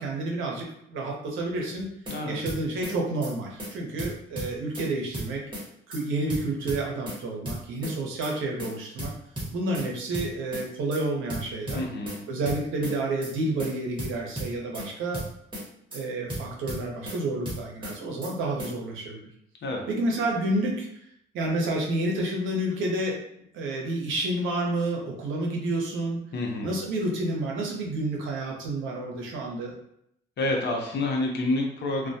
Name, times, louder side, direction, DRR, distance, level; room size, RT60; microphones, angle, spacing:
voice 1, 0.0-1.9 2.3-5.4 5.9-9.1 9.5-11.8 12.3-15.2 15.9-19.3 19.9-20.9 21.3-23.2 23.5-26.2 26.6-29.7, right 2 dB, 80° right, -1 dB, 0.7 m, -29 dB
sound 1, 1.8-2.2 2.5-2.9 3.2-3.3 3.6-3.7 4.0-4.9 5.1-5.6 5.9-6.0 6.3-7.2 7.5-7.9 8.2-8.3 8.6-8.7 9.0-9.9 10.1-10.6 10.9-11.0 11.3-12.2 12.5-12.9 13.2-13.3 13.6-13.7 14.0-14.9 15.1-15.6 15.9-16.0 16.3-17.2 17.5-17.9 18.2-18.3 18.6-18.7, right 1 dB, 25° right, 1.1 m, -34 dB
voice 2, 2.1-2.4 11.7-12.2 19.6-19.8 26.3-26.8 30.4-32.1, left 2 dB, 60° left, 0 dB, 0.7 m, -28 dB
2.2 x 2.1 x 2.6 m, 0.74 s
cardioid pair, 90°, 20 cm